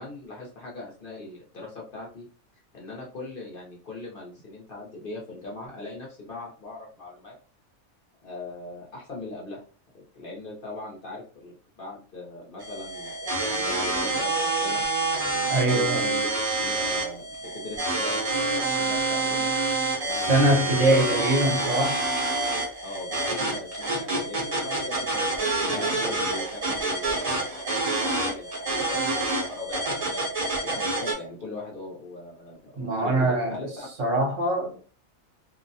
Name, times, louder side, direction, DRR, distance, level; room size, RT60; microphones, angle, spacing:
voice 1, 0.0-2.3 2.7-7.4 8.2-9.6 9.9-14.8 15.6-16.3 16.6-19.5 19.9-20.9 21.4-21.5 22.8-30.2 30.6-33.9, left 2 dB, 50° left, 0.8 m, -40 dB
sound 1, 12.6-31.1, right 2 dB, 35° right, 0.7 m, -27 dB
voice 2, 15.5-16.0 20.1-22.0 25.7-26.1 32.8-33.6 34.0-34.9, right 2 dB, 70° right, 1.1 m, -23 dB
2.6 x 2.1 x 2.6 m
omnidirectional pair, 1.4 m